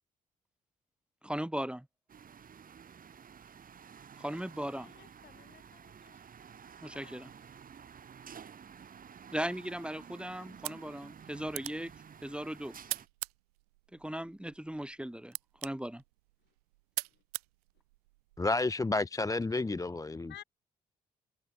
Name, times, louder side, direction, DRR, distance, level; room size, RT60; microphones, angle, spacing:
voice 1, 1.2-1.9 4.2-4.9 6.8-7.3 9.3-11.9 12.2-12.7 13.9-15.4 15.6-16.0, right 1 dB, 5° right, 2.8 m, -38 dB
sound 1, 2.1-13.1, right 7 dB, 45° right, 3.2 m, -52 dB
voice 2, 4.8-6.2 6.9-7.3 17.1-17.2 20.0-20.4, left 12 dB, 60° left, 4.6 m, -55 dB
sound 2, 10.5-18.5, right 23 dB, 75° right, 1.9 m, -44 dB
voice 3, 18.4-20.4, left 3 dB, 15° left, 0.8 m, -31 dB
figure-of-eight pair, 40°, 20 cm